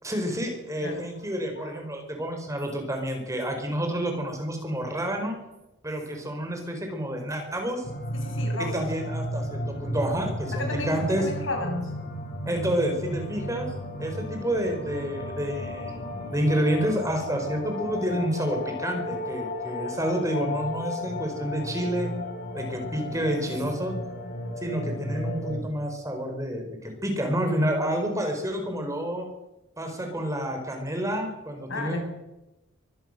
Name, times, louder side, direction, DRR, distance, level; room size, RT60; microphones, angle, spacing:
voice 1, 0.0-5.4 5.8-7.8 8.7-11.3 12.5-13.7 14.0-15.9 16.3-22.1 22.5-23.9 24.6-29.3 29.8-32.0, equal, 15° right, 4 dB, 4.4 m, -29 dB
sound 1, 7.8-25.6, left 1 dB, 45° left, 4.1 m, -34 dB
voice 2, 8.2-8.8 10.5-11.9 31.7-32.0, left 2 dB, 70° left, 3 dB, 6.7 m, -33 dB
24.0 x 19.0 x 6.7 m, 0.99 s
head